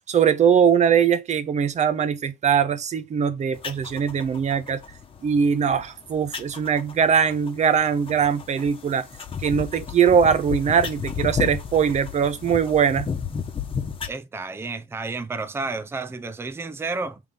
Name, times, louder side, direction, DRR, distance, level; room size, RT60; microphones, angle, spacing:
voice 1, 0.1-4.8 5.2-9.1 9.4-13.1, right 7 dB, 45° right, 0.9 m, -21 dB
sound 1, 3.5-14.1, left 6 dB, 30° left, 1.2 m, -33 dB
voice 2, 14.1-17.2, right 3 dB, 15° right, 0.6 m, -31 dB
5.9 x 3.6 x 5.2 m
cardioid pair, 110°, 17 cm